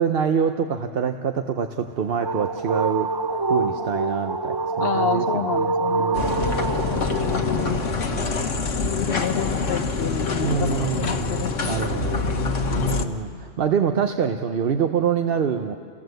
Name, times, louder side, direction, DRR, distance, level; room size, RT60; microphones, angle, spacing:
voice 1, 0.0-3.1 3.5-5.5 5.9-6.6 7.3-7.7 8.1-8.5 10.4-15.7, right 7 dB, 55° right, 6 dB, 0.9 m, -26 dB
sound 1, 1.8-7.9, right 3 dB, 30° right, 0.5 m, -26 dB
voice 2, 4.8-6.4 6.9-7.8 8.8-12.2 12.7-13.4, left 8 dB, 55° left, 11 dB, 0.9 m, -30 dB
sound 2, 6.1-13.0, left 4 dB, 80° left, 1.6 m, -25 dB
28.5 x 16.5 x 7.8 m, 2.3 s
omnidirectional pair, 1.3 m